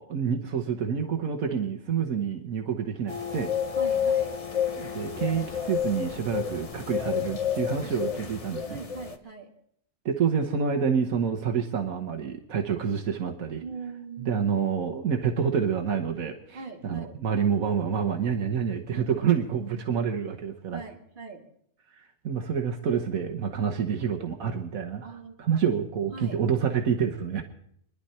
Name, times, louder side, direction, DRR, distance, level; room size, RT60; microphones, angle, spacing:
voice 1, 0.0-3.5 4.8-8.8 10.0-13.6 14.3-16.6 16.8-20.8 22.0-25.1 25.4-27.4, right 7 dB, 75° right, 3 dB, 1.5 m, -28 dB
sound 1, 3.1-9.2, left 8 dB, 30° left, 0.9 m, -30 dB
voice 2, 3.8-4.3 7.7-8.3 8.7-9.5 13.6-14.5 16.5-17.2 18.9-20.0 20.7-21.4 25.0-25.8 26.1-26.4, right 5 dB, 35° right, 1 dB, 2.1 m, -42 dB
25.5 x 11.0 x 4.3 m, 0.71 s
omnidirectional pair, 1.5 m